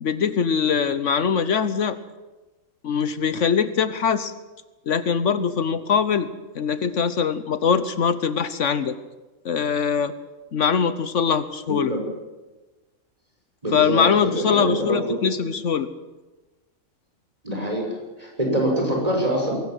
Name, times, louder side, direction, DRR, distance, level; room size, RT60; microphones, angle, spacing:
voice 1, 0.0-2.0 2.8-4.3 4.9-6.3 6.5-9.0 9.4-10.1 10.5-11.9 13.7-15.9, left 6 dB, 65° left, 13 dB, 1.2 m, -22 dB
voice 2, 11.7-12.0 13.6-15.5 17.4-17.8 18.2-19.5, right 1 dB, 25° right, 0 dB, 6.5 m, -25 dB
22.0 x 18.0 x 7.8 m, 1.1 s
omnidirectional pair, 1.4 m